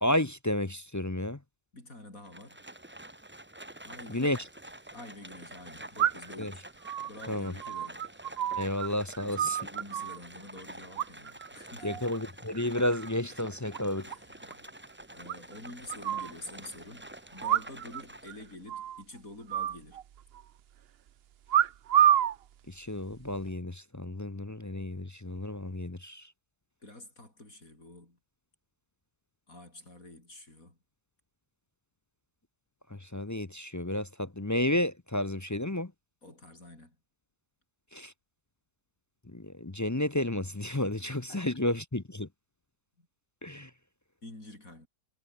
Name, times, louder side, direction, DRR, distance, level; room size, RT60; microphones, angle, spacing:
voice 1, 0.0-1.4 4.1-4.4 6.4-6.5 7.3-7.5 8.6-9.6 11.8-14.1 22.7-26.3 32.9-35.9 37.9-38.1 39.3-42.3 43.4-43.7, left 1 dB, 20° left, 0.5 m, -31 dB
voice 2, 1.7-2.6 3.8-4.4 4.9-6.6 7.1-8.0 9.2-12.0 14.1-14.7 15.1-20.0 26.8-28.2 29.5-30.8 36.2-37.0 41.3-41.6 43.0-43.1 44.2-44.9, left 2 dB, 55° left, 7.7 m, -48 dB
Livestock farm animals working animals, 2.2-18.6, right 1 dB, 10° right, 1.1 m, -48 dB
sound 1, 4.2-4.3 6.0-6.4 6.8-8.9 9.1-10.2 11.0-11.5 11.8-12.2 12.5-13.1 13.4-13.5 13.7-13.8 14.1-14.2 14.5-14.6 15.3-16.3 17.4-18.0 18.3-18.4 18.7-19.0 19.5-20.4 21.5-22.4 23.1-23.5, right 10 dB, 60° right, 0.6 m, -28 dB
omnidirectional pair, 1.7 m